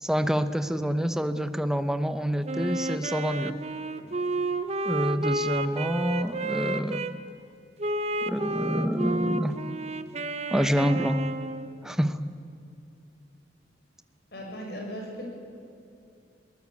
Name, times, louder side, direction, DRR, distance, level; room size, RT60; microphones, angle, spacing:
voice 1, 0.0-3.6 4.8-7.2 8.3-9.5 10.5-11.2 11.8-12.2, equal, 5° right, 10 dB, 0.9 m, -27 dB
Wind instrument woodwind instrument, 2.4-7.1 7.8-11.7, right 2 dB, 40° right, 1.0 m, -31 dB
voice 2, 14.3-15.3, equal, 60° left, 0 dB, 6.7 m, -37 dB
22.5 x 19.0 x 8.4 m, 2.6 s
head